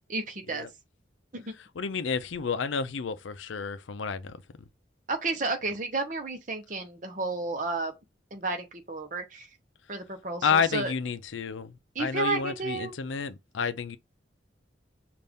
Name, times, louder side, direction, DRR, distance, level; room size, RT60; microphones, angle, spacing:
voice 1, 0.1-0.7 1.3-1.5 5.1-7.9 8.3-9.5 9.9-10.9 11.9-13.0, right 3 dB, 40° right, 0.9 m, -32 dB
voice 2, 1.8-4.4 10.4-14.0, left 6 dB, 85° left, 0.5 m, -30 dB
5.4 x 2.5 x 3.5 m
head